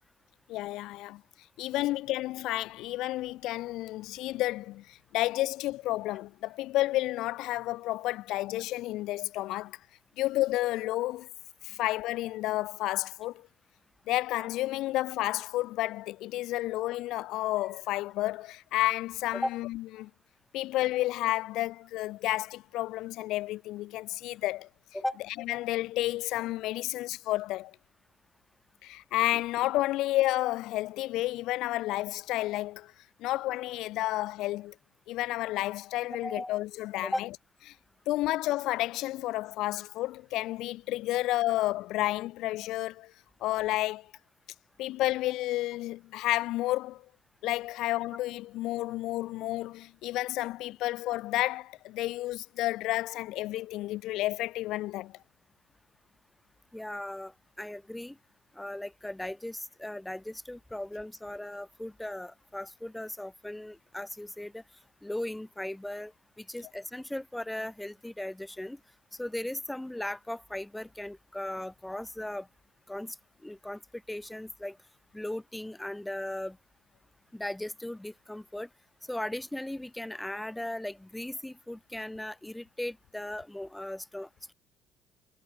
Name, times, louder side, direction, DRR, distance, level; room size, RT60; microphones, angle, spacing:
voice 1, 0.5-1.2 1.6-9.8 10.2-11.3 11.6-13.5 14.1-20.1 20.5-24.7 25.5-27.8 28.8-32.9 33.2-34.7 35.1-37.3 38.1-43.1 43.4-44.1 44.8-47.0 47.4-55.2, left 17 dB, 70° left, 0.8 m, -31 dB
voice 2, 36.2-36.5 37.0-37.2 56.7-58.2 58.6-64.6 65.0-66.1 66.4-68.8 69.1-72.5 72.9-73.2 73.4-74.8 75.1-76.6 77.3-78.7 79.1-84.5, left 1 dB, 5° left, 0.8 m, -37 dB
hypercardioid pair, 65°, 0 cm